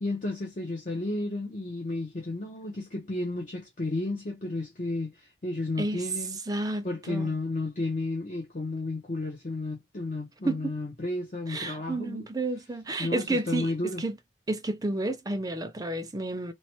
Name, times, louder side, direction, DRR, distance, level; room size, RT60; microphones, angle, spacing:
voice 1, 0.0-6.4 6.8-12.3 13.0-14.0, left 2 dB, 45° left, 0.6 m, -32 dB
voice 2, 6.5-7.4 10.4-10.7 11.5-14.2 14.5-16.5, right 2 dB, 20° right, 0.5 m, -31 dB
3.1 x 2.1 x 2.8 m
head